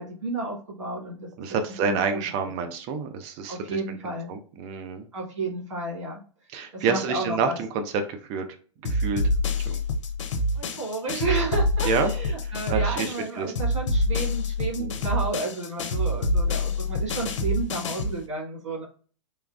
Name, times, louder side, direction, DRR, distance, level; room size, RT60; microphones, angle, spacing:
voice 1, 0.0-1.3 1.8-2.2 2.6-2.7 3.5-4.3 5.1-6.2 6.7-7.6 10.5-18.8, right 2 dB, 85° right, -3 dB, 1.5 m, -32 dB
voice 2, 1.4-5.1 6.5-8.4 8.8-9.2 9.7-9.8 11.8-12.1 12.4-13.5 14.8-15.0, right 5 dB, 40° right, 7 dB, 0.5 m, -28 dB
sound 1, 8.8-13.3 13.5-18.2, left 1 dB, 80° left, 0.5 m, -26 dB
3.2 x 2.3 x 2.3 m, 0.41 s
hypercardioid pair, 115°, 16 cm